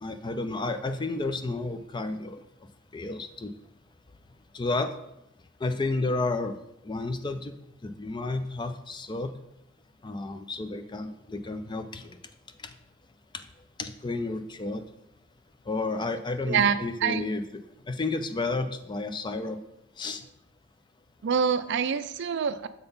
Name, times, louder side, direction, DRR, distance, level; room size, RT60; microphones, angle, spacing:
voice 1, 0.0-2.4 2.9-3.5 4.5-4.9 5.6-6.6 6.8-7.6 7.8-9.3 10.0-12.2 13.8-14.8 15.7-17.6 17.9-19.6 20.0-20.2, left 3 dB, 20° left, 9 dB, 0.4 m, -31 dB
voice 2, 16.5-17.2 21.2-22.7, right 6 dB, 55° right, 13 dB, 0.4 m, -26 dB
6.8 x 3.9 x 5.3 m, 0.82 s
head